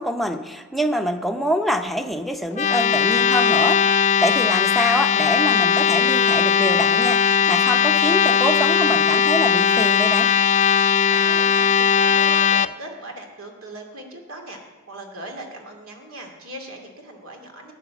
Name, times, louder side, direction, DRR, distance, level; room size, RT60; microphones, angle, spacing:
voice 1, 0.0-3.8 4.2-10.3, equal, ahead, 4 dB, 0.7 m, -25 dB
sound 1, 2.5-12.7, left 7 dB, 35° left, 0.3 m, -18 dB
voice 2, 11.1-14.6 14.9-17.7, right 1 dB, 80° right, 2 dB, 2.4 m, -38 dB
14.0 x 9.4 x 7.0 m, 1.4 s
head